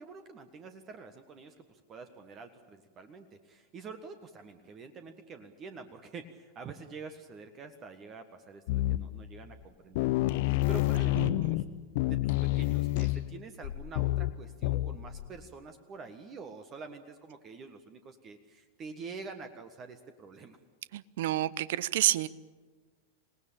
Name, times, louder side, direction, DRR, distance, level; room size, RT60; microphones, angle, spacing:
voice 1, 0.0-11.6 12.0-20.6, right 4 dB, 30° right, 9 dB, 1.5 m, -47 dB
sound 1, 8.7-9.3 9.6-9.7 10.0-15.3, left 17 dB, 50° left, 0.7 m, -29 dB
voice 2, 11.2-11.5 20.9-22.3, right 14 dB, 55° right, 20 dB, 0.7 m, -29 dB
26.5 x 18.5 x 8.8 m, 1.4 s
figure-of-eight pair, 90°, 0 cm